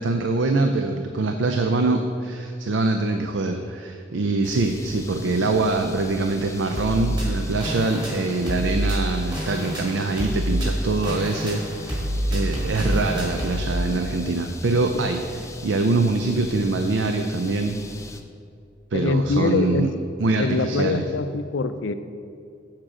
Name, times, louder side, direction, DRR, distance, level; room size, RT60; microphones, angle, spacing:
voice 1, 0.0-12.0 12.3-17.8 18.9-19.9 20.2-21.0, right 3 dB, 75° right, 6 dB, 0.5 m, -24 dB
sound 1, 4.4-18.2, left 2 dB, 15° left, 0.5 m, -41 dB
sound 2, 6.7-13.6, equal, 25° right, 2.2 m, -27 dB
voice 2, 18.9-19.9 20.4-21.9, left 3 dB, 75° left, 10 dB, 0.5 m, -24 dB
7.5 x 7.4 x 4.9 m, 2.4 s
head